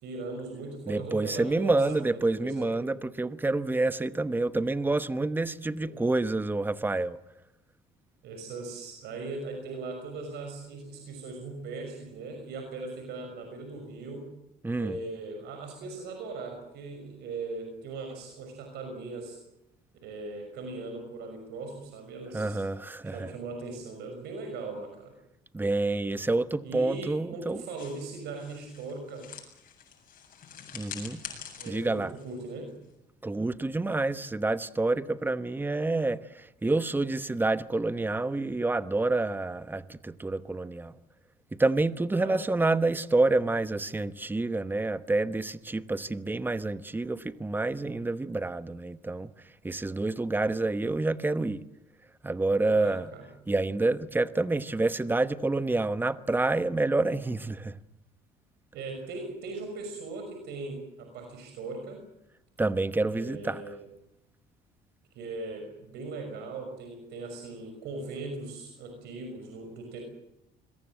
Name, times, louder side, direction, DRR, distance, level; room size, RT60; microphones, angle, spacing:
voice 1, 0.0-2.9 5.7-6.1 8.2-14.3 14.7-19.4 20.0-22.6 23.0-25.1 26.6-29.3 31.6-32.7 42.2-42.4 52.7-53.3 58.7-62.0 63.1-63.8 65.1-70.0, right 3 dB, 80° right, 5.9 m, -39 dB
voice 2, 0.9-7.2 14.6-15.0 22.3-23.3 25.5-27.6 30.7-31.2 31.7-32.1 33.2-40.9 41.5-49.3 49.6-51.6 52.2-53.1 53.5-57.8 62.6-63.8, right 2 dB, 10° right, 1.0 m, -28 dB
sound 1, 27.8-33.1, left 8 dB, 55° left, 7.9 m, -46 dB
25.5 x 22.5 x 7.7 m
cardioid pair, 110°, 17 cm